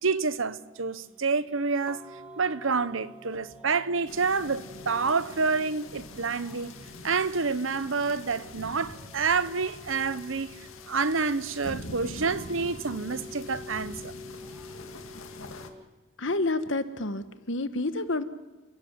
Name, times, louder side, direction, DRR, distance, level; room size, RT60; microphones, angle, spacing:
voice 1, 0.0-2.0 2.4-6.8 7.0-10.6 10.9-14.1, right 4 dB, 70° right, 1.0 m, -28 dB
sound 1, 0.9-15.8, left 1 dB, 5° right, 2.3 m, -48 dB
sound 2, 4.1-15.7, left 2 dB, 80° left, 2.1 m, -44 dB
voice 2, 16.2-18.2, left 2 dB, 65° left, 1.3 m, -29 dB
29.0 x 16.0 x 7.4 m
head